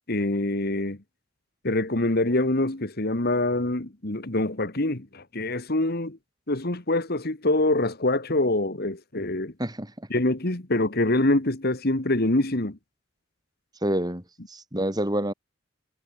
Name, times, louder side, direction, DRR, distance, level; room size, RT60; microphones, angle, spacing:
voice 1, 0.1-1.0 1.6-6.2 6.5-9.5 10.1-12.8, left 2 dB, 50° left, 2.0 m, -25 dB
voice 2, 9.6-10.1 13.8-15.3, right 1 dB, 20° right, 4.4 m, -28 dB
head